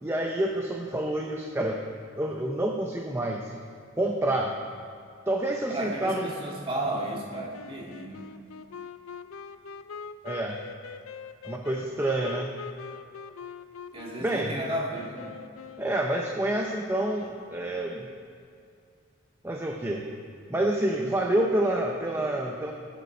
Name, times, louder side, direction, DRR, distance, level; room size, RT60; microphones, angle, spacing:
voice 1, 0.0-1.8 2.2-3.5 4.0-4.5 5.3-6.3 10.2-10.6 11.4-12.6 14.2-14.5 15.8-18.1 19.4-20.0 20.5-22.7, right 1 dB, 10° right, 0 dB, 0.7 m, -28 dB
voice 2, 5.7-8.3 13.9-15.3, right 1 dB, 30° right, -2 dB, 2.0 m, -33 dB
Wind instrument woodwind instrument, 6.9-16.4, left 5 dB, 85° left, 0.5 m, -43 dB
19.5 x 8.3 x 4.5 m, 2.4 s
head